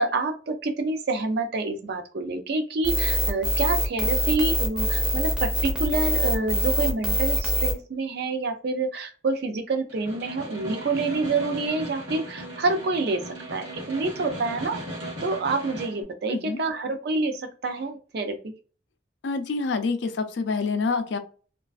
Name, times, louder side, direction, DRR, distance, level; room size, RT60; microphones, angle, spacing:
voice 1, 0.0-14.8 15.2-18.5, right 3 dB, 55° right, 5 dB, 0.4 m, -27 dB
sound 1, 2.8-7.7, equal, 5° right, 0.5 m, -24 dB
Snare drum, 9.9-16.0, right 1 dB, 90° right, 1.0 m, -37 dB
voice 2, 16.3-16.6 19.2-21.2, left 4 dB, 65° left, 9 dB, 0.4 m, -27 dB
2.4 x 2.3 x 2.3 m, 0.39 s
head